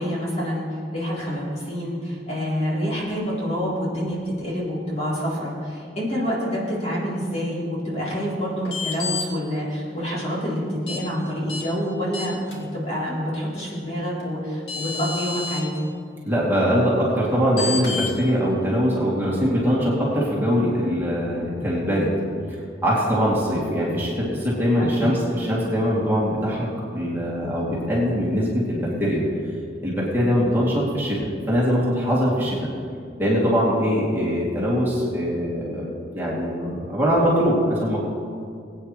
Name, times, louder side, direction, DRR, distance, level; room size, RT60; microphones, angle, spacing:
voice 1, 0.0-15.7 24.8-25.2, equal, 40° left, -7 dB, 3.5 m, -27 dB
sound 1, 8.6-9.2 10.9-11.0 11.5-11.6 12.1-12.5 14.2-14.3 14.7-15.6 17.6-18.1, left 4 dB, 80° left, 2.8 m, -29 dB
voice 2, 16.2-22.1 22.8-29.2 29.8-32.6 33.2-38.0, equal, 15° right, -7 dB, 2.8 m, -22 dB
21.5 x 9.3 x 3.3 m, 2.4 s
head